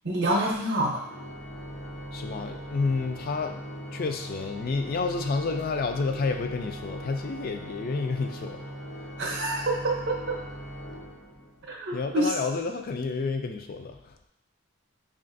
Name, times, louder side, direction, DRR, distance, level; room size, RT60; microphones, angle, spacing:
voice 1, 0.0-1.0 9.2-10.4 11.7-12.3, right 1 dB, 55° right, -2 dB, 0.6 m, -27 dB
Organ, 1.0-11.7, equal, 90° left, 0.8 m, -40 dB
voice 2, 2.1-3.6 3.9-8.6 9.0-9.1 11.9-14.2, left 4 dB, 45° left, 6 dB, 0.3 m, -30 dB
5.2 x 2.4 x 2.5 m, 0.88 s
head